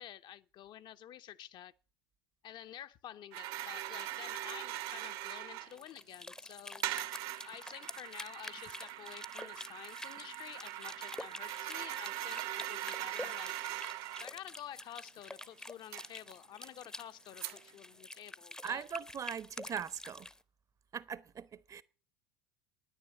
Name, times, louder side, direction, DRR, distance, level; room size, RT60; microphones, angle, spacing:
voice 1, 0.0-1.7 2.4-6.8 7.4-13.5 14.2-18.8, left 11 dB, 40° left, 0.7 m, -50 dB
sound 1, 3.3-5.7 6.8-14.3 15.9-16.1 16.6-16.7 17.4-17.7, right 14 dB, 50° right, 1.0 m, -41 dB
sound 2, 5.6-20.4, left 1 dB, 5° left, 0.8 m, -48 dB
voice 2, 18.6-20.3 20.9-21.8, right 7 dB, 25° right, 0.8 m, -40 dB
10.5 x 9.9 x 9.3 m
figure-of-eight pair, 70°, 12 cm